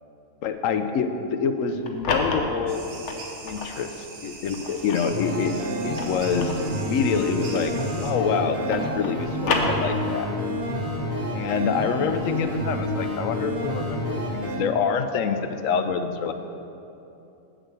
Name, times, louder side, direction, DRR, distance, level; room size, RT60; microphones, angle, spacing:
voice 1, 0.4-3.2 3.4-5.5 5.8-10.3 11.3-16.3, left 6 dB, 90° left, 9 dB, 1.1 m, -26 dB
sound 1, 1.6-3.8 4.3-8.1 8.3-10.3, left 3 dB, 65° left, 1.3 m, -31 dB
sound 2, 2.7-8.1, right 3 dB, 60° right, 1.3 m, -42 dB
sound 3, 5.1-14.6, equal, 85° right, 2.7 m, -29 dB
8.2 x 7.4 x 6.9 m, 2.9 s
omnidirectional pair, 1.3 m